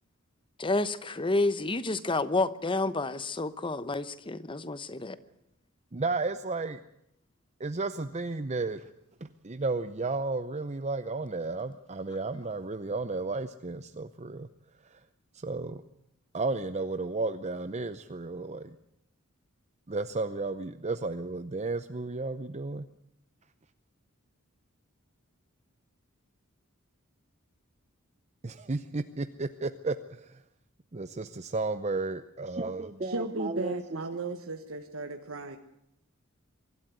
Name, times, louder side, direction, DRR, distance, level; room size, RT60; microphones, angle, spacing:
voice 1, 0.6-5.2, left 2 dB, 25° left, 14 dB, 1.0 m, -29 dB
voice 2, 5.9-6.8 7.6-8.9 9.2-14.5 14.8-15.0 15.3-15.8 16.3-18.8 19.9-22.9 28.4-30.4 30.9-34.0, right 3 dB, 35° right, 10 dB, 0.7 m, -33 dB
voice 3, 33.0-35.6, right 3 dB, 80° right, 5 dB, 1.4 m, -35 dB
24.0 x 13.0 x 9.4 m, 0.82 s
head